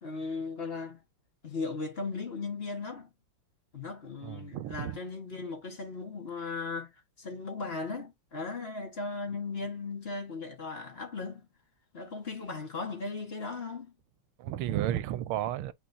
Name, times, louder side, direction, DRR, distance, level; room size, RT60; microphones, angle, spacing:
voice 1, 0.0-1.0 1.4-3.1 3.7-6.9 7.2-11.5 11.9-13.9, left 4 dB, 30° left, 1.4 m, -37 dB
voice 2, 4.2-5.0 14.4-15.7, right 12 dB, 85° right, 1.5 m, -32 dB
8.6 x 4.3 x 2.7 m
omnidirectional pair, 2.4 m